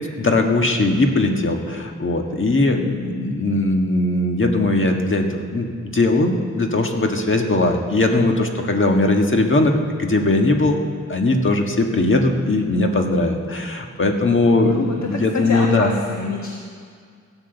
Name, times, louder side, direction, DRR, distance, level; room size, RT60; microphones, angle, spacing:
voice 1, 0.2-9.7 10.0-10.8 11.1-15.9, left 2 dB, 45° left, 3 dB, 1.5 m, -19 dB
voice 2, 14.6-16.5, left 4 dB, 70° left, 0 dB, 1.5 m, -26 dB
15.0 x 10.5 x 8.0 m, 2.1 s
wide cardioid pair, 120°, 29 cm